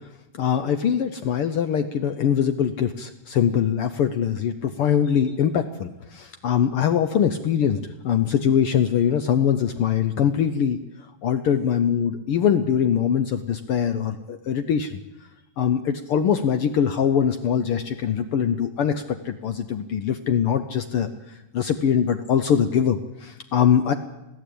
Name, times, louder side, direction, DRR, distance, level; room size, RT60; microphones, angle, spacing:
voice 1, 0.4-7.8 8.0-10.8 11.2-14.9 15.6-21.1 21.5-23.9, left 8 dB, 85° left, 9 dB, 1.2 m, -22 dB
21.5 x 15.5 x 8.6 m, 0.96 s
omnidirectional pair, 3.7 m